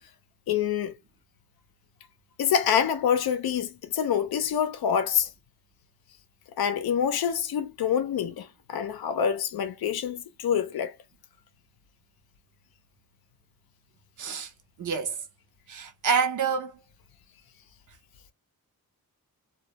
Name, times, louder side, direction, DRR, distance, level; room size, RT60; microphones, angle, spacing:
voice 1, 0.5-1.0 2.4-5.3 6.6-10.9, left 8 dB, 80° left, 0.6 m, -26 dB
voice 2, 14.2-14.5 14.8-15.2 15.7-16.7, right 6 dB, 55° right, 0.7 m, -27 dB
2.2 x 2.1 x 2.8 m
cardioid pair, 65°, 37 cm